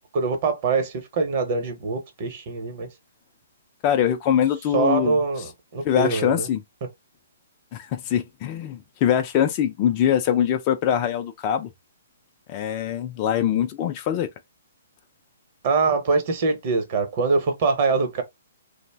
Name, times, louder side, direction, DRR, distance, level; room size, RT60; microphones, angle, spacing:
voice 1, 0.1-2.9 4.7-6.5 15.6-18.2, right 4 dB, 45° right, 0.8 m, -23 dB
voice 2, 3.8-5.2 5.8-6.6 7.7-11.7 12.5-14.3, left 9 dB, 35° left, 0.4 m, -23 dB
2.5 x 2.0 x 3.3 m
hypercardioid pair, 140°, 0 cm